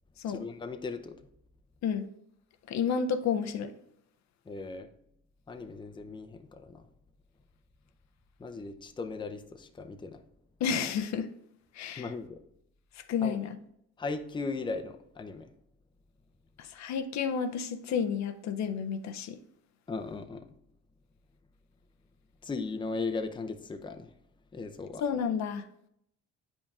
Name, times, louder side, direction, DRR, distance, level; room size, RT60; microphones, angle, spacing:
voice 1, 0.3-1.2 4.5-4.9 5.5-6.8 8.4-10.2 12.0-12.4 13.2-13.4 14.0-15.5 19.9-20.5 22.4-24.1 24.5-25.0, left 4 dB, 15° left, 0.5 m, -37 dB
voice 2, 2.7-3.7 10.6-11.3 11.7-12.1 12.9-13.6 16.6-19.4 25.0-25.6, left 6 dB, 65° left, 0.5 m, -31 dB
8.6 x 5.2 x 2.4 m
cardioid pair, 90°, 30 cm